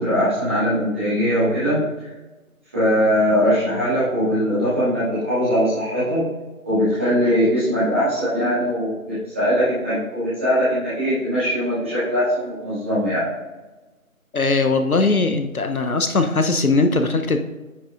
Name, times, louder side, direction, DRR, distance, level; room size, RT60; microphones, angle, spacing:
voice 1, 0.0-2.1 2.7-6.3 6.6-13.3, equal, 10° right, -13 dB, 2.0 m, -21 dB
voice 2, 14.3-17.4, left 3 dB, 75° left, 7 dB, 0.9 m, -19 dB
9.9 x 7.7 x 2.5 m, 1.2 s
figure-of-eight pair, 165°, 43 cm